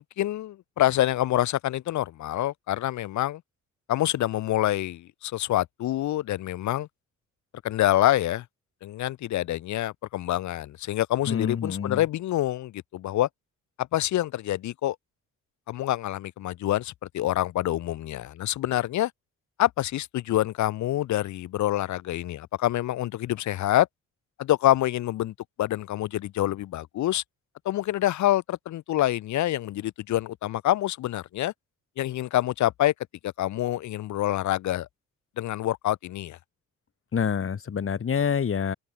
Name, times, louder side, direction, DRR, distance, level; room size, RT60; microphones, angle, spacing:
voice 1, 0.0-3.4 3.9-6.9 7.6-8.4 8.8-13.3 13.8-15.0 15.7-19.1 19.6-23.9 24.4-27.2 27.6-31.5 32.0-32.9 33.2-34.9 35.4-36.4, left 14 dB, 70° left, 0.9 m, -26 dB
voice 2, 11.3-12.0 37.1-38.7, left 7 dB, 45° left, 3.1 m, -27 dB
cardioid pair, 90°, 30 cm